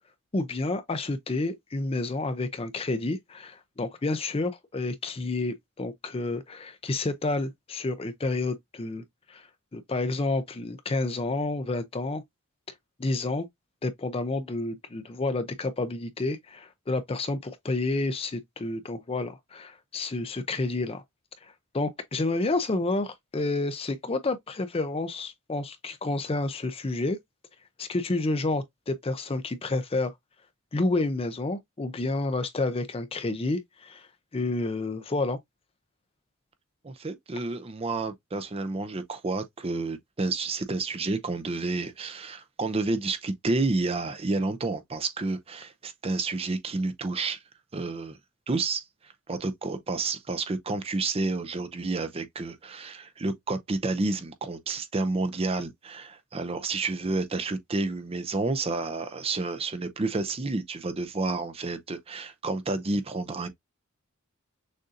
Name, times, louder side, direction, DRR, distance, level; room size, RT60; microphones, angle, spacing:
voice 1, 0.3-9.5 9.7-12.2 13.0-13.5 13.8-21.0 21.4-27.2 27.8-30.1 30.7-34.1 34.3-35.4, left 2 dB, 25° left, 0.5 m, -30 dB
voice 2, 36.8-47.4 47.7-48.2 48.5-48.8 49.3-63.5, right 3 dB, 25° right, 0.5 m, -30 dB
6.4 x 2.6 x 2.5 m
head